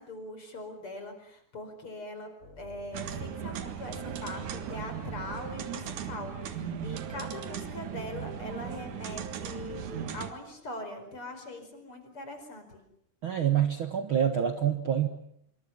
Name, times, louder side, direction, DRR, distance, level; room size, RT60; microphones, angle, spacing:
voice 1, 0.0-2.3 2.6-12.8, left 2 dB, 30° left, 7 dB, 5.5 m, -42 dB
sound 1, 2.4-10.5, left 2 dB, 85° left, 9.1 m, -53 dB
sound 2, 2.9-10.3, right 8 dB, 55° right, 2.7 m, -37 dB
voice 2, 13.2-15.1, right 9 dB, 75° right, 7 dB, 1.1 m, -26 dB
26.5 x 24.5 x 7.4 m, 0.71 s
omnidirectional pair, 4.8 m